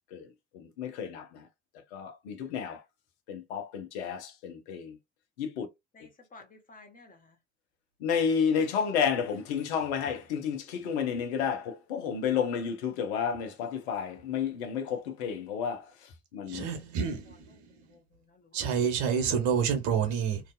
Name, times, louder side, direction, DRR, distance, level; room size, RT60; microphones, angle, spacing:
voice 1, 0.5-1.4 1.9-2.8 3.3-5.0 5.4-5.7 8.0-15.8 16.3-16.7, left 7 dB, 65° left, 0.7 m, -31 dB
voice 2, 5.9-7.4 16.4-16.8 17.7-18.7, left 3 dB, 25° left, 1.0 m, -55 dB
voice 3, 16.5-17.5 18.5-20.4, right 7 dB, 55° right, 0.9 m, -28 dB
2.6 x 2.3 x 2.2 m
figure-of-eight pair, 55°, 35 cm